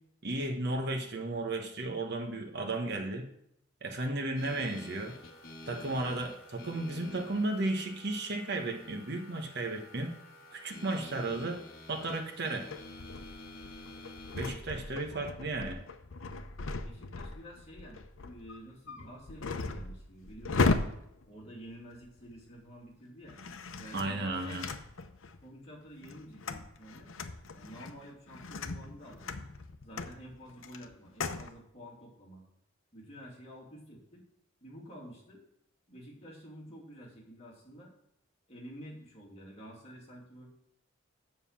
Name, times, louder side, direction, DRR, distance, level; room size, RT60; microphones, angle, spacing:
voice 1, 0.2-3.3 3.8-5.2 5.7-10.2 10.5-11.6 11.9-12.7 14.3-15.8 23.9-24.7, right 2 dB, 55° right, 3 dB, 1.2 m, -34 dB
sound 1, 4.4-14.6, left 1 dB, 50° left, 1.6 m, -49 dB
sound 2, 12.7-22.5 23.2-25.4 25.8-31.5, left 3 dB, 75° left, 0.7 m, -37 dB
voice 2, 16.8-20.8 21.3-23.4 23.8-24.8 25.4-27.1 27.5-29.5 29.8-32.4 32.9-34.2 34.6-35.4 35.9-37.9 38.5-40.5, equal, 30° left, -3 dB, 2.8 m, -50 dB
7.4 x 6.6 x 7.3 m, 0.76 s
head